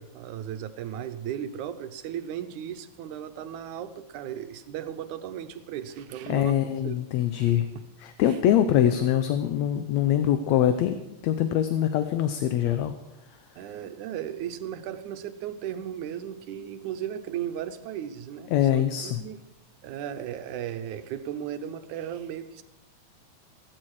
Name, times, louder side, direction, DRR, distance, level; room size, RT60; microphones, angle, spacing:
voice 1, 0.0-7.0 7.4-7.9 8.3-8.4 13.6-19.4 19.8-22.6, right 10 dB, 90° right, 10 dB, 2.3 m, -36 dB
voice 2, 6.3-7.7 8.0-11.0 11.2-12.9 18.5-19.2, left 11 dB, 75° left, 9 dB, 1.9 m, -23 dB
15.5 x 15.5 x 4.8 m, 0.93 s
omnidirectional pair, 3.4 m